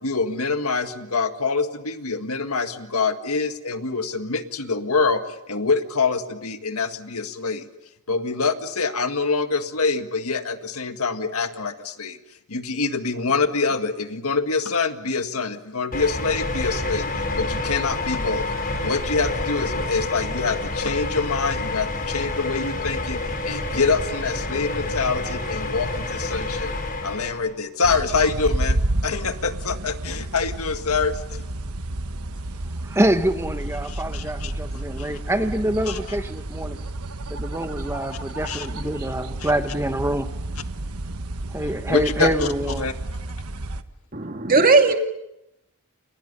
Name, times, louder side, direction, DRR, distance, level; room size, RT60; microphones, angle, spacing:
voice 1, 0.0-7.7 8.1-12.2 12.5-17.1 17.3-18.5 18.8-26.7 27.0-31.4 33.8-34.5 35.0-35.1 35.9-36.0 38.4-38.7 39.4-39.5 41.9-42.3 42.8-42.9, left 4 dB, 80° left, 7 dB, 1.8 m, -25 dB
sound 1, 15.9-27.5, left 2 dB, 40° left, 4.7 m, -28 dB
sound 2, 27.8-43.8, right 1 dB, 85° right, 1.2 m, -31 dB
voice 2, 32.8-36.8 37.3-40.3 41.5-42.9, right 1 dB, 10° right, 8 dB, 1.1 m, -25 dB
voice 3, 44.1-45.0, right 3 dB, 40° right, 4 dB, 2.3 m, -17 dB
29.0 x 29.0 x 5.5 m, 0.86 s
head